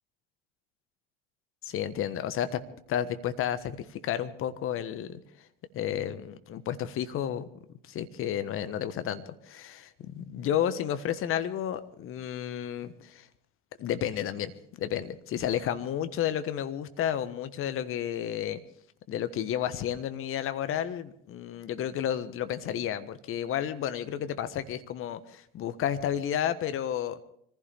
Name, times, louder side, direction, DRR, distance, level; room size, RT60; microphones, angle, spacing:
voice 1, 1.6-5.5 5.7-7.5 7.8-13.3 13.8-18.6 19.1-27.2, left 10 dB, 45° left, 11 dB, 1.3 m, -32 dB
25.0 x 15.5 x 3.4 m, 0.67 s
hypercardioid pair, 70°, 30 cm